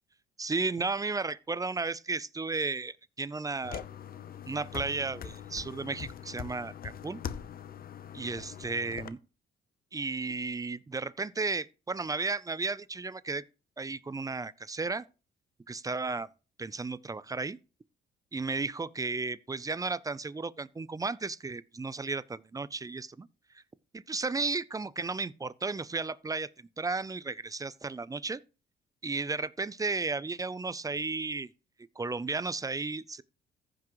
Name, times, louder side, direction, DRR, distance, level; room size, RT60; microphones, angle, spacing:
voice 1, 0.4-3.8 4.5-7.2 8.1-9.2 9.9-13.4 13.8-15.0 15.7-16.3 16.6-17.6 18.3-23.3 23.5-23.6 23.9-28.4 29.0-31.5 32.0-33.2, right 3 dB, 15° right, 0.5 m, -34 dB
sound 1, 3.6-9.1, left 8 dB, 50° left, 0.7 m, -42 dB
15.0 x 6.0 x 3.0 m
cardioid pair, 90°, 20 cm